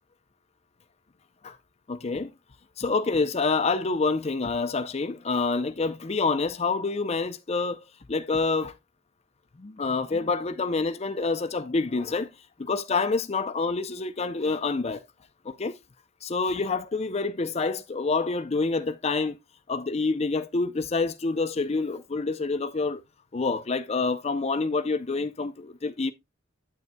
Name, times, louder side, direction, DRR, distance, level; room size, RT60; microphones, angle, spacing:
voice 1, 1.9-2.3 2.8-7.8 8.1-8.7 9.6-12.3 12.6-15.0 15.4-15.7 16.2-19.4 19.7-23.0 23.3-26.1, left 3 dB, 35° left, 0.5 m, -27 dB
9.4 x 8.4 x 2.2 m
head